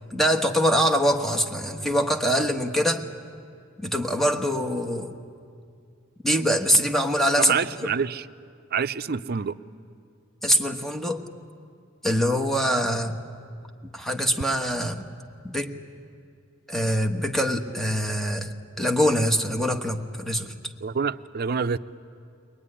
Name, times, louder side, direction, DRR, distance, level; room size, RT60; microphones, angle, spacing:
voice 1, 0.1-3.0 3.8-5.1 6.2-7.6 10.4-11.2 12.0-13.2 13.9-15.1 15.4-15.7 16.7-20.5, equal, ahead, 3 dB, 1.3 m, -24 dB
voice 2, 7.4-8.3 8.7-9.6 20.8-21.8, right 6 dB, 50° right, 13 dB, 0.6 m, -26 dB
22.0 x 21.5 x 9.9 m, 2.3 s
head